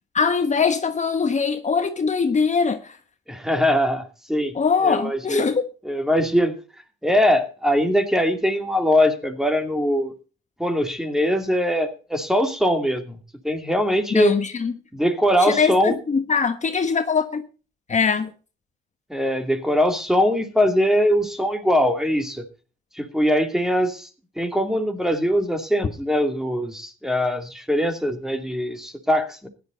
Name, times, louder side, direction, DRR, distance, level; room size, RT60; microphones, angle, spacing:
voice 1, 0.1-3.0 4.5-5.6 14.1-14.7 15.4-17.4 17.9-18.3, left 5 dB, 35° left, 1.4 m, -22 dB
voice 2, 3.3-4.5 4.8-5.5 5.8-6.5 7.0-10.1 10.6-13.1 13.4-14.3 14.9-16.0 19.1-22.4 22.9-24.1 24.4-29.5, equal, ahead, 2.7 m, -21 dB
15.5 x 11.0 x 4.0 m
cardioid pair, 90°, 20 cm